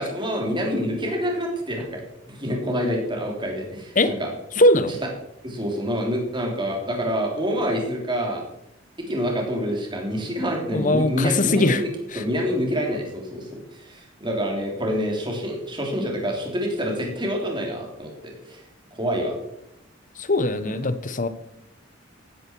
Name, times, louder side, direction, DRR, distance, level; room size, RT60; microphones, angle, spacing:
voice 1, 0.0-2.0 2.3-4.3 5.4-8.4 9.1-11.9 12.1-18.6 18.9-19.4 20.6-20.7, equal, 25° right, 0 dB, 3.4 m, -27 dB
voice 2, 4.6-5.0 10.7-11.8 12.1-12.2 20.2-21.3, left 1 dB, 40° left, 12 dB, 1.0 m, -20 dB
15.0 x 12.5 x 4.6 m, 0.80 s
head